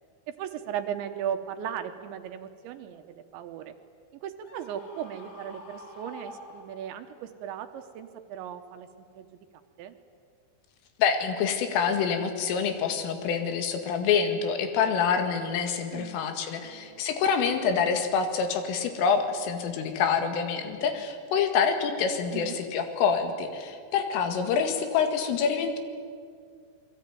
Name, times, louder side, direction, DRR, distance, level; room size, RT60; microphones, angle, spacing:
voice 1, 0.3-3.8 4.2-9.3 9.8-9.9 15.9-16.2 16.6-17.0 22.3-22.6, right 9 dB, 75° right, 8 dB, 3.1 m, -37 dB
Screaming, 4.4-7.1, left 2 dB, 55° left, 5.4 m, -47 dB
voice 2, 11.0-25.8, left 6 dB, 80° left, 6 dB, 4.6 m, -26 dB
27.5 x 22.0 x 9.2 m, 2.1 s
omnidirectional pair, 5.8 m